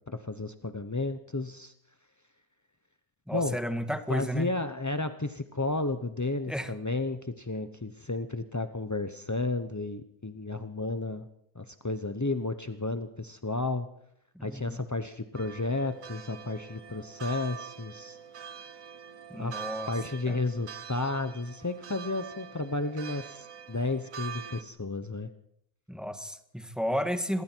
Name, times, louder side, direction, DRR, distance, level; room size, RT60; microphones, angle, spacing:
voice 1, 0.1-1.7 3.3-3.6 4.1-11.3 11.5-13.9 14.4-18.2 19.3-19.6 19.9-25.3, left 2 dB, 25° left, 9 dB, 0.4 m, -32 dB
voice 2, 3.3-4.5 6.5-6.7 14.3-14.8 19.3-19.9 20.3-20.4 25.9-27.4, equal, ahead, 7 dB, 1.5 m, -33 dB
sound 1, 15.3-24.6, right 8 dB, 60° right, 1.3 m, -44 dB
26.0 x 22.5 x 4.5 m, 0.73 s
omnidirectional pair, 1.7 m